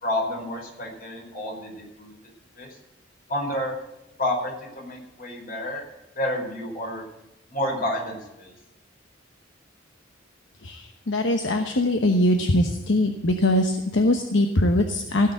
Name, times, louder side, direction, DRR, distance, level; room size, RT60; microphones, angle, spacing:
voice 1, 0.0-2.1 2.6-2.7 3.3-3.7 4.2-5.8 6.1-7.0 7.5-8.5, left 1 dB, 50° left, 0 dB, 4.8 m, -29 dB
voice 2, 10.6-15.3, left 1 dB, 70° left, 4 dB, 1.1 m, -22 dB
16.0 x 6.8 x 8.0 m, 0.95 s
head